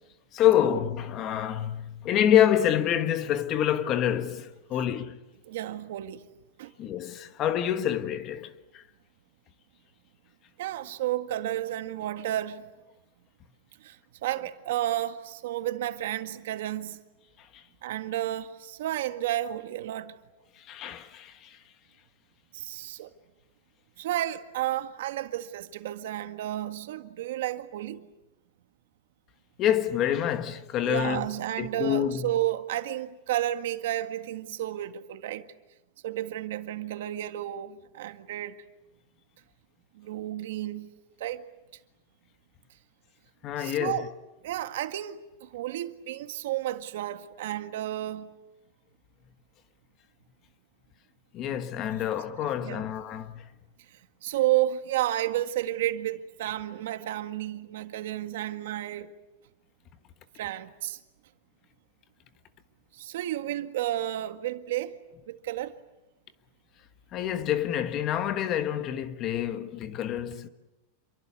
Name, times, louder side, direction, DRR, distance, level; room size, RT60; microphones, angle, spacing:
voice 1, 0.3-5.2 6.8-8.8 17.5-17.6 20.6-21.6 29.6-31.3 31.6-32.3 43.4-44.1 51.3-53.5 67.1-70.5, left 10 dB, 30° left, 1.4 m, -27 dB
voice 2, 5.5-6.3 6.6-6.7 10.6-12.6 13.8-14.0 14.2-17.0 17.8-20.1 22.5-23.1 24.0-28.0 30.8-35.5 36.0-38.6 40.0-40.9 41.2-41.5 43.6-44.1 44.4-48.3 52.6-52.9 54.2-59.1 60.4-61.0 62.9-64.9 65.3-65.8, right 13 dB, 65° right, 1.8 m, -31 dB
28.5 x 23.5 x 8.5 m
supercardioid pair, 165°, 0 cm